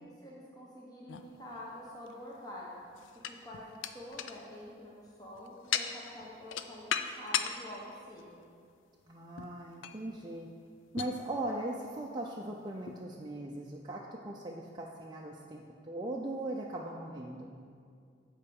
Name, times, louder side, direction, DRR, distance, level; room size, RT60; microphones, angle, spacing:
voice 1, 0.0-2.8 3.2-8.5, left 1 dB, 20° left, -4 dB, 1.0 m, -47 dB
sound 1, 1.1-2.1 2.8-7.6 8.1-8.3 9.4-9.6 9.8-10.0 11.0-11.2 12.0-12.1 12.9-13.0, left 8 dB, 70° left, 0.4 m, -37 dB
voice 2, 9.1-10.5 10.9-17.6, right 1 dB, 20° right, -2 dB, 0.5 m, -39 dB
8.6 x 4.7 x 7.0 m, 2.3 s
head